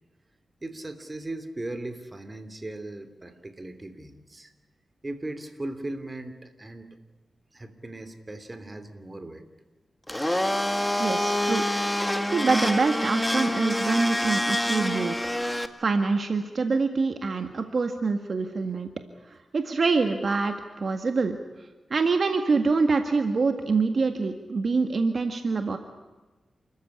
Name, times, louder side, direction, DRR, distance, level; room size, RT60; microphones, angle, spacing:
voice 1, 0.6-4.5 5.0-7.0 7.5-9.4, right 2 dB, 25° right, 9 dB, 3.1 m, -38 dB
Domestic sounds home sounds, 10.1-15.7, left 1 dB, 10° left, 1.8 m, -26 dB
voice 2, 11.0-11.6 12.3-15.3 15.8-18.9 19.3-21.4 21.9-25.8, right 4 dB, 60° right, 6 dB, 1.8 m, -25 dB
29.5 x 14.5 x 9.9 m, 1.2 s
cardioid pair, 70°, 0 cm